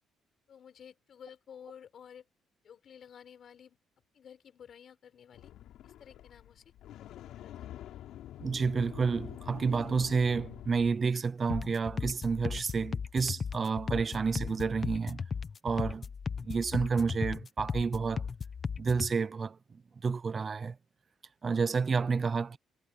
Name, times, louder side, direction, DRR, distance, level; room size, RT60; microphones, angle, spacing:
voice 1, 0.5-2.3 2.6-3.8 4.1-5.5 5.8-6.6 7.0-7.7, left 8 dB, 45° left, 6.6 m, -53 dB
sound 1, 5.3-11.0, left 12 dB, 70° left, 5.2 m, -46 dB
voice 2, 8.4-15.2 15.6-16.1 16.4-18.3 18.8-20.8 21.4-22.6, right 5 dB, 30° right, 0.7 m, -30 dB
sound 2, 11.5-19.1, left 5 dB, 30° left, 1.0 m, -36 dB
cardioid pair, 155°, 0 cm